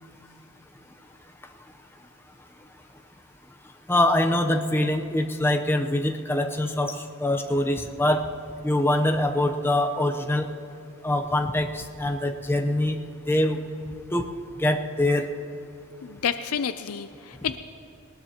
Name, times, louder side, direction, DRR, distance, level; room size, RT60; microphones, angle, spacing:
voice 1, 3.9-8.3 8.6-10.5 11.0-13.0 13.3-13.6 14.1-15.2, left 1 dB, 10° left, 4 dB, 0.7 m, -24 dB
voice 2, 16.0-17.6, left 7 dB, 85° left, 10 dB, 0.5 m, -29 dB
20.0 x 19.5 x 2.9 m, 2.9 s
head